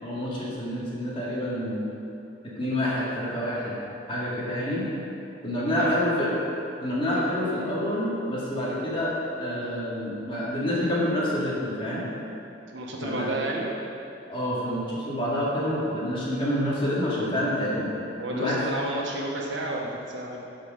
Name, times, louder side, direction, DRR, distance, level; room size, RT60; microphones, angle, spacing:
voice 1, 0.0-1.8 2.4-3.8 4.1-4.9 5.4-6.3 6.8-12.0 13.0-13.3 14.3-17.9 18.3-18.7, left 1 dB, 30° left, -7 dB, 2.3 m, -27 dB
voice 2, 5.6-5.9 12.7-13.7 18.2-20.4, right 2 dB, 85° right, -2 dB, 1.4 m, -31 dB
11.5 x 5.1 x 5.1 m, 2.8 s
head